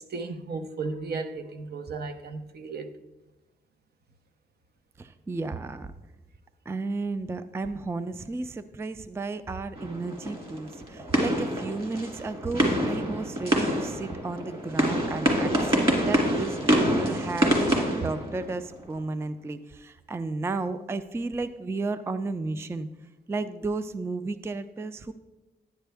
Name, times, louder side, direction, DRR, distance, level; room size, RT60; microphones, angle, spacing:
voice 1, 0.1-2.9, right 4 dB, 65° right, 0.8 m, -35 dB
voice 2, 5.0-5.9 6.7-22.9 23.3-25.1, right 3 dB, 15° right, 0.3 m, -33 dB
sound 1, 9.8-18.8, equal, 30° right, 2.2 m, -26 dB
10.5 x 10.0 x 3.4 m
wide cardioid pair, 125°, 18 cm